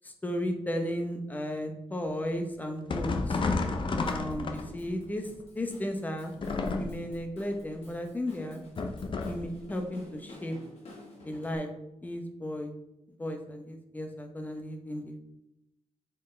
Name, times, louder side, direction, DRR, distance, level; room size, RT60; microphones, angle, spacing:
voice 1, 0.0-3.4 4.0-5.3 5.5-6.3 6.8-8.6 9.3-10.6 11.2-11.7 12.0-12.7 13.2-15.2, left 1 dB, 15° left, 4 dB, 0.8 m, -34 dB
sound 1, 2.9-5.0 6.4-7.2 8.8-9.5, left 3 dB, 45° left, 0.7 m, -31 dB
Drum kit / Drum, 4.1-11.6, left 2 dB, 65° left, 2.2 m, -51 dB
7.5 x 4.6 x 3.2 m, 0.87 s
wide cardioid pair, 145°, 12 cm